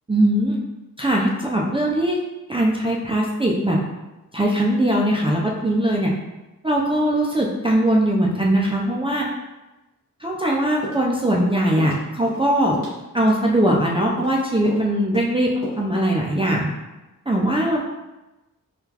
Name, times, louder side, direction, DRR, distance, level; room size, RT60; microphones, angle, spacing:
voice 1, 0.1-0.6 1.0-2.2 2.5-3.8 4.3-6.1 6.6-9.3 10.2-12.8 13.1-16.7 17.3-17.8, right 1 dB, 15° right, -3 dB, 0.4 m, -20 dB
sound 1, 10.8-11.5 11.8-12.0 12.3-12.5 12.7-13.4 13.7-13.9 14.2-14.4 14.7-14.9 15.1-15.3 15.6-15.7, left 2 dB, 65° left, 1.2 m, -33 dB
3.7 x 2.3 x 2.8 m, 1.0 s
wide cardioid pair, 80°, 35 cm